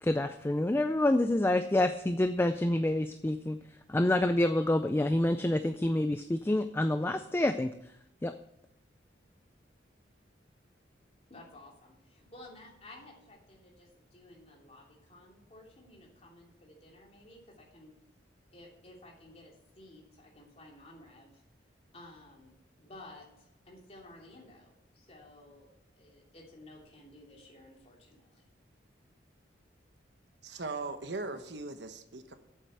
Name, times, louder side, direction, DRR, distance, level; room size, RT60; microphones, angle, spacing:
voice 1, 0.0-3.6 3.9-7.7 8.2-8.3, left 1 dB, 10° left, 9 dB, 0.3 m, -27 dB
voice 2, 11.3-17.9 18.5-21.4 21.9-25.7 26.0-28.4, left 1 dB, 35° left, -2 dB, 2.9 m, -54 dB
voice 3, 30.4-32.3, right 3 dB, 65° right, 8 dB, 1.0 m, -39 dB
8.4 x 7.4 x 8.8 m, 0.81 s
head